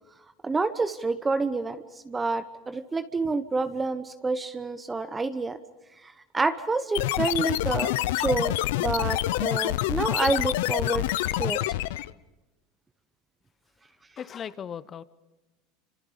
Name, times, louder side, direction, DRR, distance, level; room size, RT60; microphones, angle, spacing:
voice 1, 0.4-5.6 6.0-11.1 11.4-11.6, right 3 dB, 15° right, 1.0 m, -28 dB
sound 1, 6.9-12.1, left 16 dB, 75° left, 0.7 m, -27 dB
voice 2, 14.2-15.0, left 8 dB, 35° left, 1.0 m, -37 dB
28.5 x 26.5 x 5.1 m
supercardioid pair, 105°, 0 cm